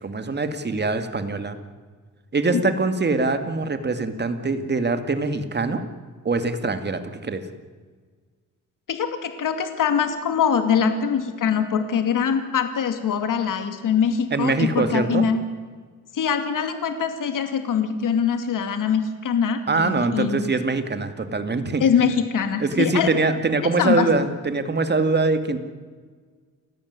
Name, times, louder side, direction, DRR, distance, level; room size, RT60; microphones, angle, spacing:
voice 1, 0.0-1.6 2.3-5.8 6.2-7.4 14.3-15.3 19.7-21.8 22.6-25.6, right 3 dB, 35° right, 9 dB, 2.3 m, -23 dB
voice 2, 8.9-15.4 16.1-20.5 21.8-23.1 23.8-24.1, left 7 dB, 80° left, 8 dB, 2.6 m, -23 dB
29.0 x 14.5 x 9.8 m, 1.5 s
cardioid pair, 115°, 32 cm